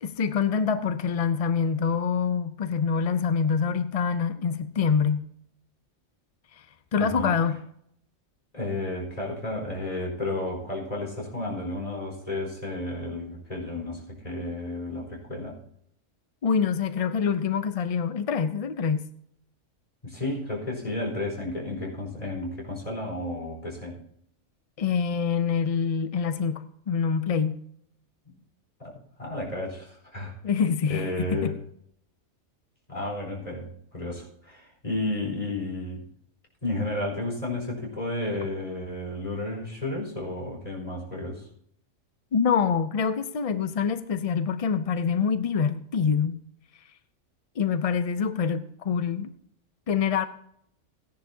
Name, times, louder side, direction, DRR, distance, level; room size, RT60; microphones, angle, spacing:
voice 1, 0.0-5.2 6.5-6.6 6.9-7.6 16.4-19.0 24.8-27.6 30.4-31.5 42.3-46.4 47.6-49.3 49.9-50.2, left 6 dB, 55° left, 0.4 m, -25 dB
voice 2, 7.0-7.3 8.5-15.6 20.0-24.0 28.3-28.4 28.8-30.3 30.9-31.6 32.9-36.0 36.6-41.5, left 2 dB, 30° left, 4.5 m, -32 dB
16.5 x 10.5 x 2.8 m
omnidirectional pair, 1.3 m